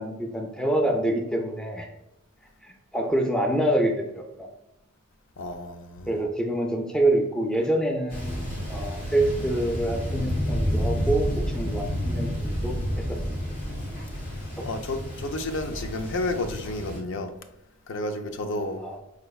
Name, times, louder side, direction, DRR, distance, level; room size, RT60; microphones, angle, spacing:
voice 1, 0.0-1.9 2.6-4.5 6.1-12.8 13.1-13.4 14.6-14.7 18.8-19.0, right 1 dB, 5° left, 0.3 m, -26 dB
voice 2, 5.4-6.2 14.6-17.3 17.9-18.8, left 2 dB, 60° left, 0.5 m, -31 dB
Thunder, 8.1-17.0, equal, 45° left, 1.4 m, -30 dB
4.8 x 3.3 x 2.3 m
head